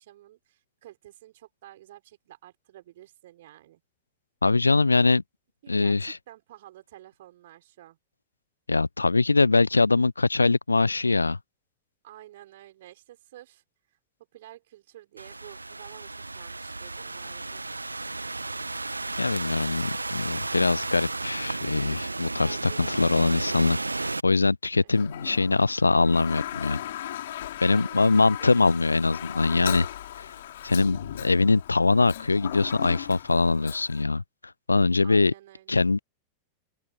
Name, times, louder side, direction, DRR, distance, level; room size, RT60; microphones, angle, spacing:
voice 1, 0.0-3.8 5.6-8.0 12.0-13.6 14.3-17.7 22.4-23.1 24.8-24.9 27.7-28.5 35.0-35.9, right 14 dB, 55° right, 6.5 m, -50 dB
voice 2, 4.4-5.2 5.7-6.1 8.7-11.4 19.2-26.8 27.6-29.9 30.2-30.3 30.6-34.2 34.7-35.3 35.7-36.0, left 3 dB, 80° left, 0.6 m, -23 dB
Thunderstorm / Rain, 15.2-24.2, right 3 dB, 80° right, 1.3 m, -33 dB
Toilet flush, 24.9-34.0, left 12 dB, 60° left, 3.2 m, -37 dB
figure-of-eight pair, 90°, 0 cm